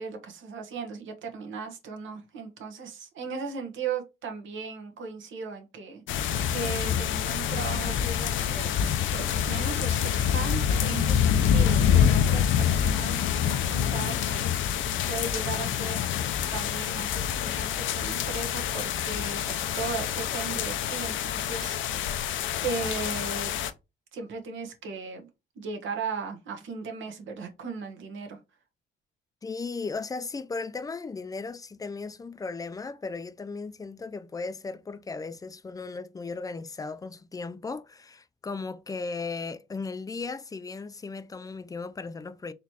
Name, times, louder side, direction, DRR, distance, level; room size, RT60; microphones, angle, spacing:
voice 1, 0.0-6.0 6.5-16.0 16.5-22.3 22.6-23.5 24.1-25.3 25.5-28.4, right 4 dB, 75° right, 1.2 m, -37 dB
sound 1, 6.1-23.7, left 9 dB, 75° left, 0.5 m, -26 dB
voice 2, 29.4-42.5, left 4 dB, 20° left, 0.4 m, -36 dB
4.0 x 3.1 x 2.8 m
cardioid pair, 90°, 20 cm